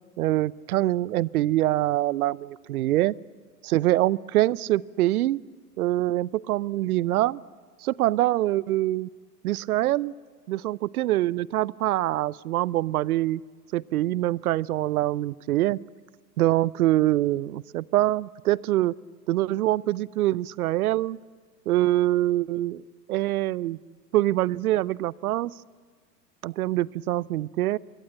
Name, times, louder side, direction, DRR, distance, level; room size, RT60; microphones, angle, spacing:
voice 1, 0.2-3.1 3.6-5.4 5.8-7.4 7.8-9.1 9.4-10.1 10.5-13.4 13.7-15.8 16.4-18.9 19.3-21.2 21.7-22.8 23.1-23.8 24.1-25.5 26.4-27.8, right 15 dB, 60° right, 23 dB, 0.7 m, -24 dB
26.5 x 21.5 x 8.7 m, 1.5 s
hypercardioid pair, 105°, 49 cm